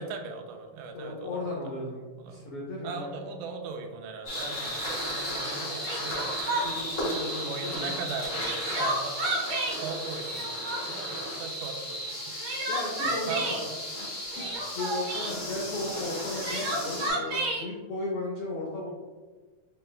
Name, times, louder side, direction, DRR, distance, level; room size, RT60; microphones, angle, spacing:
voice 1, 0.0-1.4 2.2-2.5 2.8-6.5 7.4-9.3 9.8-12.4 13.0-13.6 14.4-14.6, right 4 dB, 85° right, 4 dB, 2.0 m, -39 dB
voice 2, 0.9-3.2 6.5-8.1 12.7-13.6 14.3-18.9, left 2 dB, 85° left, -3 dB, 1.3 m, -36 dB
sound 1, 4.2-17.1, equal, 40° left, 0.9 m, -34 dB
Crying sobbing, 5.4-5.5 5.8-6.9 8.1-9.8 10.2-11.0 12.1-13.6 14.3-15.3 16.1-17.6, right 1 dB, 70° right, 1.2 m, -31 dB
6.5 x 3.2 x 2.3 m, 1.4 s
omnidirectional pair, 3.6 m